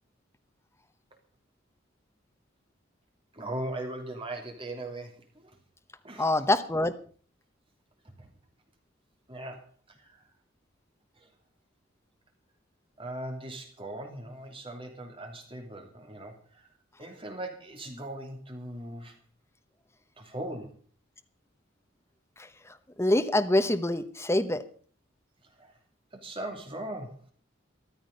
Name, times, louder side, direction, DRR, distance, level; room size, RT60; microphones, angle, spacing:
voice 1, 3.3-5.6 6.0-6.4 8.0-8.3 9.3-10.3 11.1-11.3 13.0-16.7 17.0-19.2 20.2-20.8 25.6-25.8 26.1-27.2, right 1 dB, 30° right, 3 dB, 2.7 m, -39 dB
voice 2, 6.2-6.9 23.0-24.6, left 1 dB, 15° left, 9 dB, 0.9 m, -25 dB
13.5 x 13.0 x 5.2 m, 0.43 s
head